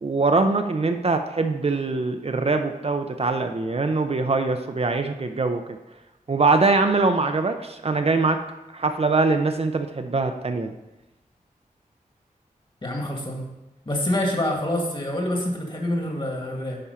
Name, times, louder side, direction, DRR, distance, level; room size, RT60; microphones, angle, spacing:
voice 1, 0.0-5.6 6.3-8.4 8.7-10.7, right 3 dB, 45° right, 6 dB, 0.6 m, -23 dB
voice 2, 12.8-13.4 13.9-16.8, left 1 dB, 35° left, 1 dB, 1.9 m, -26 dB
8.5 x 4.4 x 5.7 m, 1.0 s
wide cardioid pair, 75°, 15 cm